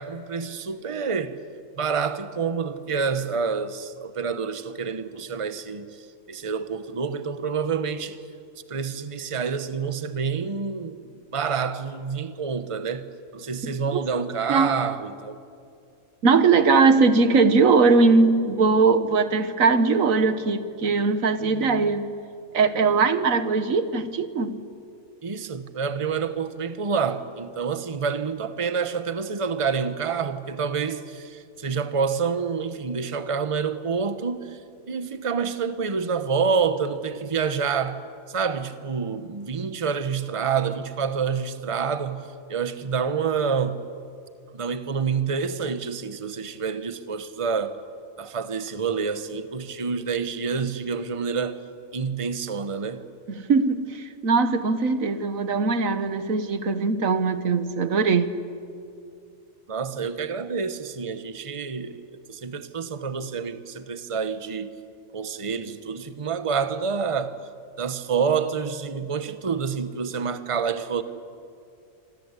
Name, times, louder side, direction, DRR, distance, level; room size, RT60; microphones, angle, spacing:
voice 1, 0.0-1.4 1.8-8.2 8.7-13.1 13.3-15.4 25.2-34.6 34.9-38.0 38.3-43.8 44.5-47.8 48.2-51.6 51.9-53.0 59.7-64.7 65.1-67.4 67.8-71.0, right 6 dB, 25° right, 11 dB, 1.0 m, -28 dB
voice 2, 16.2-22.0 22.5-24.6 53.5-58.3, right 4 dB, 85° right, 11 dB, 1.7 m, -20 dB
26.5 x 25.5 x 8.2 m, 2.5 s
omnidirectional pair, 1.4 m